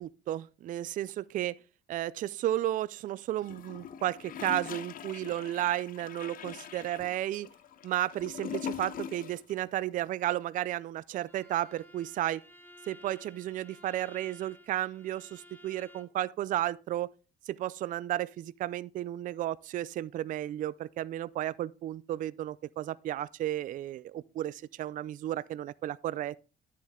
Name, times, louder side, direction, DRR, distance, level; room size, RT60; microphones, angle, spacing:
voice 1, 0.0-1.6 1.9-7.5 7.8-12.4 12.9-17.1 17.5-26.4, right 13 dB, 50° right, 0.4 m, -33 dB
Gurgling / Toilet flush, 3.4-9.5 9.8-9.9, left 8 dB, 55° left, 0.9 m, -42 dB
Bowed string instrument, 11.3-16.2, left 1 dB, 10° left, 2.2 m, -55 dB
11.0 x 7.4 x 3.7 m
cardioid pair, 110°, 17 cm